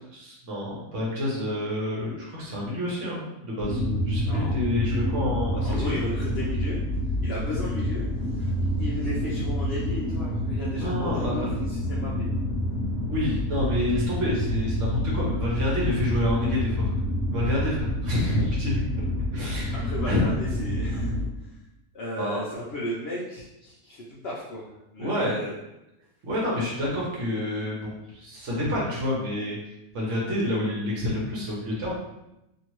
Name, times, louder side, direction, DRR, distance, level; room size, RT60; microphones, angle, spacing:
voice 1, 0.1-5.9 10.8-11.5 13.1-16.9 17.3-18.8 19.3-20.2 22.2-22.4 25.0-25.4 26.2-29.6 29.9-32.0, left 1 dB, 55° right, -4 dB, 1.1 m, -28 dB
sound 1, 3.6-21.3, left 1 dB, 80° right, 1.3 m, -28 dB
voice 2, 4.2-4.5 5.6-6.8 7.2-8.5 8.8-12.3 19.7-21.5 21.9-25.5, left 1 dB, 65° left, -6 dB, 0.6 m, -35 dB
2.8 x 2.6 x 3.0 m, 0.91 s
omnidirectional pair, 1.6 m